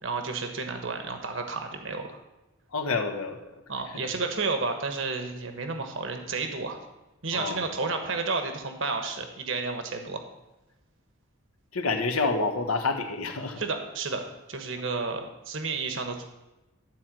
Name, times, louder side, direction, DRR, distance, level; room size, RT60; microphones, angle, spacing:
voice 1, 0.0-2.2 3.7-6.8 7.2-10.2 13.6-14.2 14.5-16.3, right 4 dB, 60° right, 5 dB, 1.2 m, -31 dB
voice 2, 2.7-3.5 3.9-4.1 7.3-7.6 11.7-13.6, left 3 dB, 85° left, 5 dB, 1.2 m, -28 dB
12.0 x 4.5 x 7.6 m, 1.0 s
head